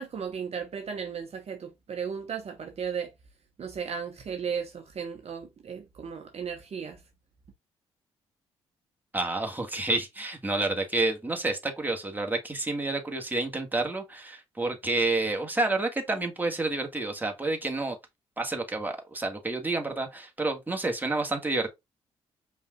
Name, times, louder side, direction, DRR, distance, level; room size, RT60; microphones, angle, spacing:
voice 1, 0.0-3.1 3.6-7.0, right 7 dB, 50° right, 1.1 m, -35 dB
voice 2, 9.1-17.9 18.4-21.7, right 2 dB, 15° right, 1.7 m, -29 dB
5.4 x 3.4 x 2.3 m
hypercardioid pair, 45°, 14 cm